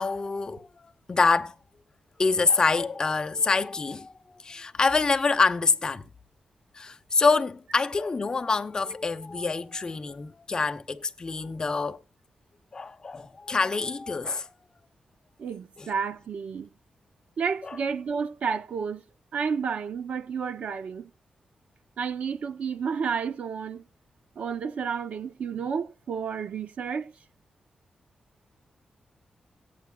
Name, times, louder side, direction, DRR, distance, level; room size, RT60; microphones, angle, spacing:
voice 1, 0.0-1.5 2.2-6.1 6.7-12.0 12.7-14.5 15.8-15.9 17.7-17.8, left 4 dB, 30° left, 0.8 m, -26 dB
voice 2, 15.4-16.7 17.4-19.0 19.3-21.1 22.0-23.8 24.4-27.1, right 6 dB, 75° right, 0.9 m, -31 dB
17.5 x 8.9 x 2.3 m
wide cardioid pair, 155°, 2 cm